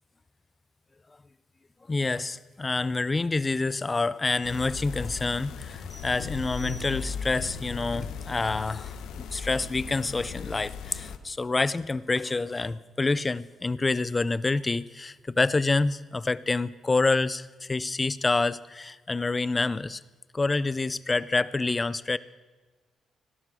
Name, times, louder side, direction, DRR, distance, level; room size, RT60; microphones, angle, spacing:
voice 1, 1.9-9.0 9.3-20.0 20.3-22.2, left 3 dB, 25° left, 19 dB, 0.5 m, -27 dB
sound 1, 4.4-11.2, left 6 dB, 80° left, 1.0 m, -37 dB
sound 2, 5.9-7.4, right 1 dB, 10° right, 3.7 m, -51 dB
17.5 x 12.5 x 6.2 m, 1.3 s
cardioid pair, 90°, 0 cm